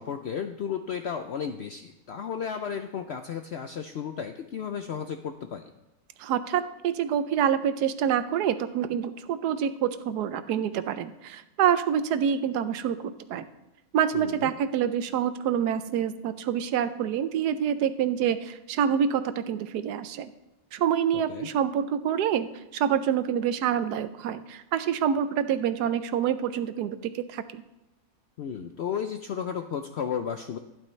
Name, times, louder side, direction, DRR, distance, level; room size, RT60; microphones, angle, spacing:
voice 1, 0.0-5.6 14.1-14.5 21.1-21.5 28.4-30.6, left 7 dB, 70° left, 7 dB, 0.6 m, -33 dB
voice 2, 6.2-13.4 13.9-20.3 20.7-27.6, right 9 dB, 85° right, 12 dB, 1.2 m, -27 dB
12.0 x 11.0 x 3.2 m, 0.95 s
omnidirectional pair, 1.7 m